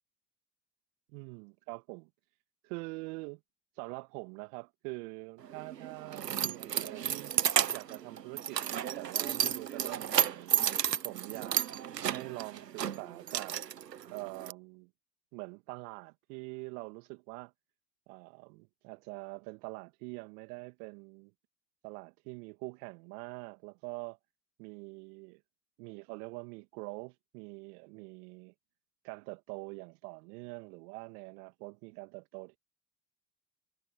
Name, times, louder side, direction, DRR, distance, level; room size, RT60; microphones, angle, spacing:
voice 1, 1.1-2.1 2.6-3.4 3.8-7.3 7.7-10.5 11.0-11.7 12.1-13.5 14.1-14.9 15.3-17.5 18.1-21.3 21.8-24.2 24.6-25.4 25.8-28.5 29.0-32.6, right 30 dB, 70° right, 2.8 m, -44 dB
Keys jangling, 5.4-14.5, right 9 dB, 90° right, 1.0 m, -32 dB
hypercardioid pair, 60°, 47 cm